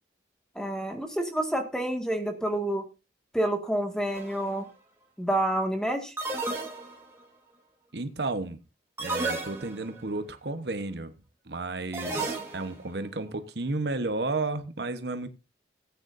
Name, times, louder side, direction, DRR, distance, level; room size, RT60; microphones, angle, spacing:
voice 1, 0.6-2.9 3.3-4.7 5.2-6.1, right 1 dB, 5° left, 1.9 m, -28 dB
sound 1, 4.1-4.5 6.2-7.2 9.0-10.0 11.9-12.8, right 2 dB, 15° right, 3.1 m, -33 dB
voice 2, 7.9-8.6 9.0-11.1 11.4-15.3, right 2 dB, 75° right, 1.1 m, -32 dB
18.5 x 9.3 x 2.6 m
head